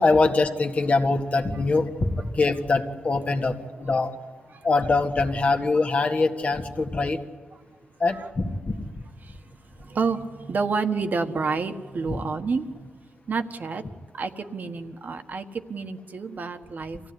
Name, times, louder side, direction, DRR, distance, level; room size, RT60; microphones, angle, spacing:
voice 1, 0.0-4.1 4.6-7.2 8.0-8.8 12.1-12.2, left 3 dB, 40° left, 5 dB, 1.8 m, -23 dB
voice 2, 9.8-12.9 13.3-13.8 14.1-17.0, right 4 dB, 50° right, 7 dB, 1.4 m, -29 dB
25.5 x 16.0 x 9.8 m, 1.5 s
wide cardioid pair, 125°, 4 cm